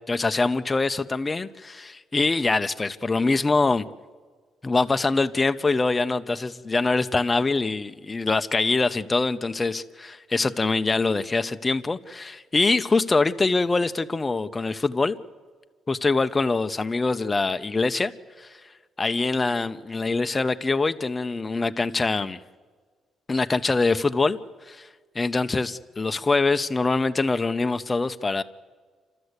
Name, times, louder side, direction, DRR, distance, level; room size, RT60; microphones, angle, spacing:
voice 1, 0.1-3.8 4.6-15.2 15.9-18.1 18.4-18.5 19.0-22.4 23.3-24.4 24.7-24.9 25.1-28.4, left 3 dB, 25° left, 9 dB, 0.8 m, -24 dB
29.0 x 13.0 x 8.2 m, 1.5 s
cardioid pair, 90°, 0 cm